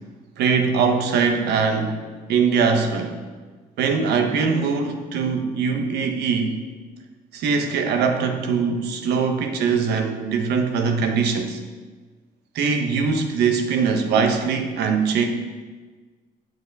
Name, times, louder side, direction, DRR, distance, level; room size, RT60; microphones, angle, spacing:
voice 1, 0.4-2.0 2.3-3.2 3.8-6.6 7.3-11.6 12.5-15.3, right 5 dB, 75° right, 5 dB, 1.1 m, -22 dB
8.1 x 7.5 x 4.7 m, 1.4 s
cardioid pair, 110°, 17 cm